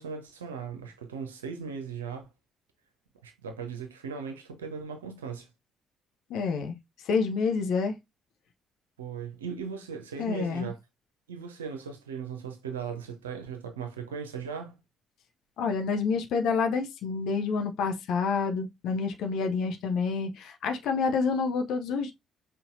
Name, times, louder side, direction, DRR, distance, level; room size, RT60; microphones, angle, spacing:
voice 1, 0.0-2.3 3.2-5.5 9.0-10.8 11.3-14.8, right 6 dB, 80° right, 0.8 m, -38 dB
voice 2, 6.3-6.8 7.0-7.9 10.2-10.7 15.6-22.1, left 5 dB, 60° left, 0.7 m, -28 dB
5.5 x 2.7 x 2.6 m
figure-of-eight pair, 45°, 0 cm